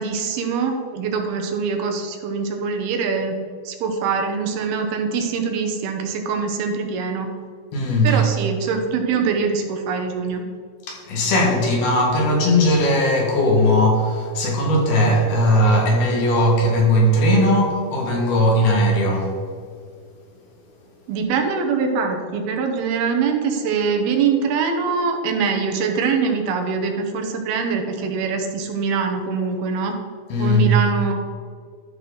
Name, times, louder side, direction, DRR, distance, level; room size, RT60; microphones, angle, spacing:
voice 1, 0.0-3.3 3.7-7.3 8.0-10.4 21.1-30.0 30.4-31.1, right 5 dB, 80° right, 4 dB, 2.9 m, -23 dB
voice 2, 7.7-8.2 10.9-19.3 30.3-30.8, equal, 75° left, -1 dB, 3.6 m, -18 dB
12.5 x 6.0 x 3.9 m, 2.1 s
omnidirectional pair, 4.5 m